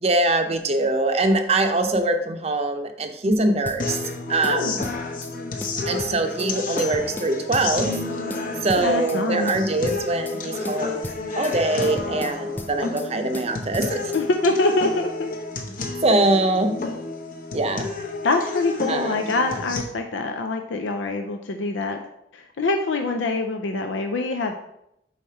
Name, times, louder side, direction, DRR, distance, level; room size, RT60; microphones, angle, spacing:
voice 1, 0.0-4.0 4.3-4.9 5.9-8.0 8.6-14.1 16.0-16.7 17.5-17.9 18.9-19.3, right 2 dB, 35° right, 6 dB, 0.6 m, -23 dB
sound 1, 3.6-4.2 4.4-5.3 5.6-6.5 6.8-8.0 8.3-9.2 9.5-10.4 10.6-11.6 11.8-13.1 13.3-14.2, left 2 dB, 10° left, 0.3 m, -37 dB
sound 2, 3.8-19.8, left 3 dB, 45° left, 0.8 m, -31 dB
voice 2, 4.4-4.7 8.8-9.5 14.1-15.3 18.2-22.0 22.3-24.5, left 2 dB, 90° left, 5 dB, 0.5 m, -24 dB
5.0 x 4.2 x 5.6 m, 0.80 s
head